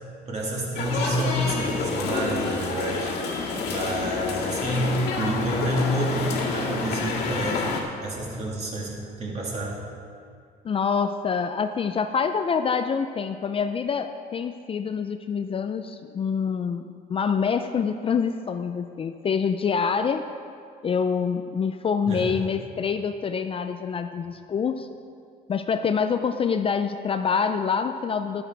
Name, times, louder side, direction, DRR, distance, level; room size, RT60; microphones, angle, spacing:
voice 1, 0.3-3.1 3.7-7.6 8.0-9.7 22.1-22.4, right 1 dB, 40° right, -3 dB, 2.9 m, -28 dB
sound 1, 0.8-7.8, left 4 dB, 80° left, 2.0 m, -28 dB
voice 2, 10.6-20.3 20.8-24.9 25.5-28.4, left 6 dB, 35° left, 8 dB, 0.5 m, -26 dB
12.0 x 10.0 x 4.7 m, 2.3 s
cardioid pair, 110°, 17 cm